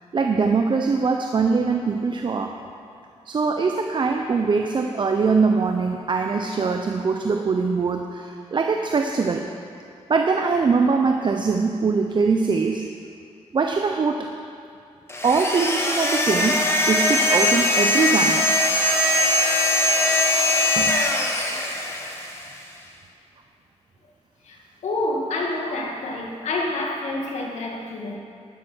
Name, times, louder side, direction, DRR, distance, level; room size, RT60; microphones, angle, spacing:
voice 1, 0.1-2.5 3.3-9.5 10.1-12.8 13.5-14.3 15.2-18.5 20.8-21.0, right 4 dB, 45° right, 4 dB, 0.8 m, -22 dB
sound 1, 15.1-22.5, left 1 dB, 25° left, 1.7 m, -21 dB
voice 2, 21.4-21.8 24.4-28.2, left 2 dB, 80° left, 0 dB, 2.0 m, -28 dB
12.0 x 11.5 x 6.2 m, 2.4 s
cardioid pair, 100°, 11 cm